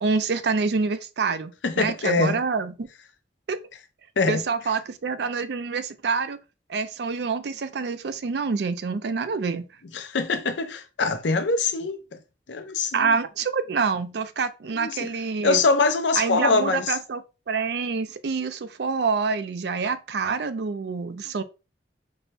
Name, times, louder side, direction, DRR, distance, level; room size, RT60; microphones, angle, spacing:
voice 1, 0.0-2.9 3.5-3.6 4.3-6.4 6.7-9.7 12.9-15.6 16.2-17.2 17.5-21.4, right 5 dB, 65° right, 0.4 m, -27 dB
voice 2, 1.6-2.4 4.2-4.4 9.9-12.2 12.5-13.2 14.7-15.1 15.4-17.0, left 3 dB, 90° left, 0.6 m, -23 dB
4.2 x 2.1 x 3.3 m
head